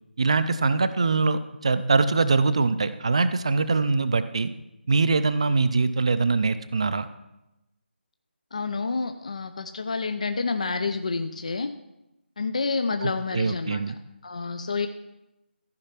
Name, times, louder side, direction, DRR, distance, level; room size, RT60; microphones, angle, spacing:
voice 1, 0.2-4.5 4.9-7.1 13.0-13.9, right 4 dB, 30° right, 12 dB, 0.4 m, -23 dB
voice 2, 8.5-11.7 12.4-13.8 14.2-14.9, left 4 dB, 35° left, 8 dB, 0.5 m, -28 dB
14.5 x 5.4 x 5.8 m, 0.92 s
figure-of-eight pair, 175°, 6 cm